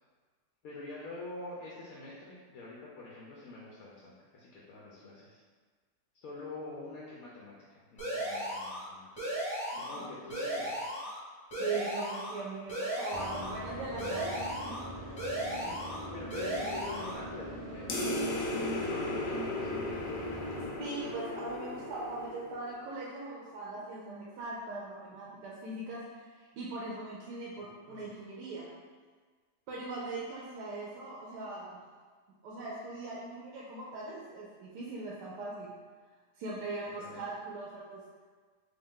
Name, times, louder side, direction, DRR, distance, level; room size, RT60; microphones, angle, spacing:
voice 1, 0.6-5.4 6.1-9.4 9.7-10.8 15.7-19.9 27.6-28.1 37.0-37.2, left 2 dB, 65° left, -5 dB, 1.0 m, -46 dB
sound 1, 8.0-8.8 9.2-10.0 10.3-11.2 11.5-12.4 12.7-13.5 14.0-14.8 15.2-16.0 16.3-17.2, equal, 20° left, 1.2 m, -36 dB
voice 2, 9.7-10.1 11.6-14.8 15.0-15.2 20.8-28.7 29.7-31.8 32.4-35.7 36.4-38.0, right 2 dB, 85° right, -5 dB, 1.2 m, -40 dB
sound 2, 13.1-20.7, right 1 dB, 60° right, 0.3 m, -43 dB
sound 3, 17.9-22.8, left 1 dB, 85° left, 1.2 m, -35 dB
3.5 x 2.6 x 3.6 m, 1.5 s
omnidirectional pair, 1.8 m